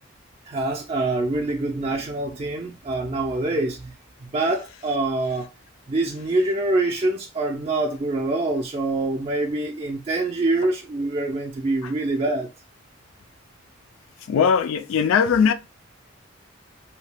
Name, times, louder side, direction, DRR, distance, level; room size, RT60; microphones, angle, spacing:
voice 1, 0.5-3.9 4.3-5.5 5.9-12.5, right 2 dB, 30° right, 0.3 m, -25 dB
voice 2, 14.3-15.5, left 6 dB, 90° left, 0.3 m, -19 dB
2.7 x 2.2 x 3.2 m
head